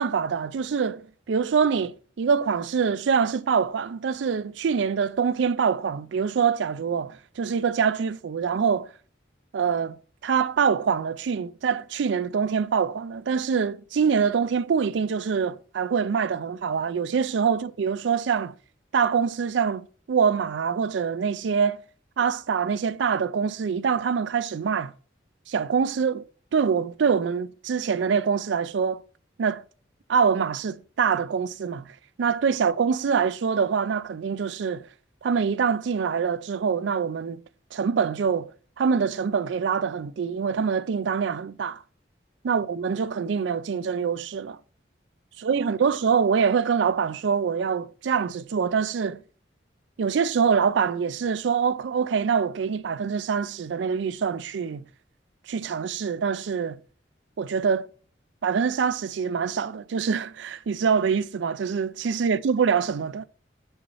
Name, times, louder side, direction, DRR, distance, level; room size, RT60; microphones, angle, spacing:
voice 1, 0.0-8.9 9.5-10.0 10.2-18.5 18.9-21.8 22.2-24.9 25.5-26.2 26.5-29.0 29.4-29.6 30.1-34.9 35.2-37.4 37.7-38.5 38.8-41.8 42.4-44.6 45.4-49.2 50.0-54.8 55.5-56.8 57.4-57.9 58.4-63.2, right 6 dB, 75° right, 0.4 m, -25 dB
5.6 x 4.1 x 5.5 m
head